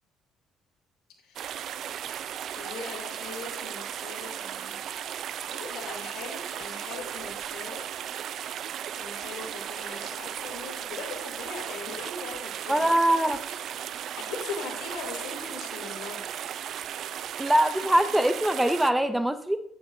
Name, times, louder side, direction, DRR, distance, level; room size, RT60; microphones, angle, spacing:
voice 1, 1.2-1.5 2.5-5.0 5.5-8.2 9.0-12.9 13.2-16.2, left 4 dB, 85° left, 1 dB, 2.8 m, -41 dB
sound 1, 1.4-18.9, right 10 dB, 60° right, 0.4 m, -36 dB
voice 2, 12.7-13.4 17.4-19.6, right 1 dB, 5° right, 10 dB, 0.5 m, -23 dB
13.0 x 8.6 x 2.6 m, 0.72 s
cardioid pair, 110°, 0 cm